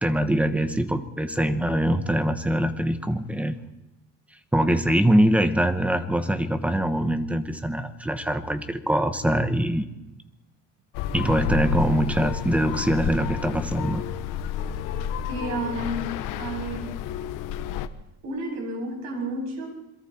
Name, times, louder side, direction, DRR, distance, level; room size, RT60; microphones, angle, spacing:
voice 1, 0.0-3.6 4.5-9.8 11.1-14.0, right 1 dB, 5° right, 9 dB, 1.1 m, -23 dB
sound 1, 10.9-17.9, left 9 dB, 80° left, 1.2 m, -30 dB
voice 2, 15.3-17.0 18.2-19.7, right 1 dB, 60° right, 0 dB, 8.0 m, -31 dB
27.5 x 22.5 x 4.4 m, 0.95 s
cardioid pair, 170°, 31 cm